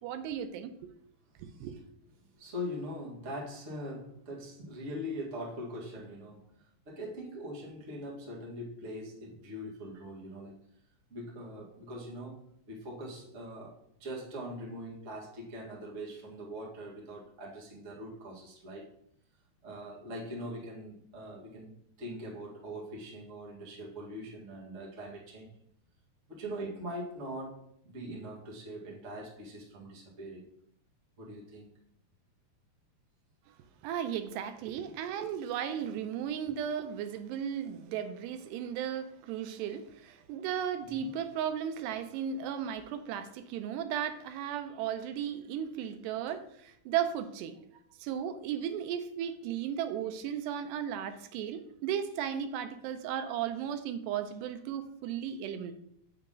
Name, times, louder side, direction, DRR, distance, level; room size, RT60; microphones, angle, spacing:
voice 1, 0.0-0.9 1.4-1.8 33.8-47.6 48.0-55.7, right 9 dB, 85° right, 9 dB, 2.8 m, -35 dB
voice 2, 2.4-6.5 6.8-10.6 11.1-18.9 19.6-25.5 26.3-30.4 31.2-31.8 40.8-41.1, equal, 40° right, -4 dB, 1.1 m, -42 dB
8.1 x 6.5 x 3.8 m, 0.71 s
omnidirectional pair, 4.7 m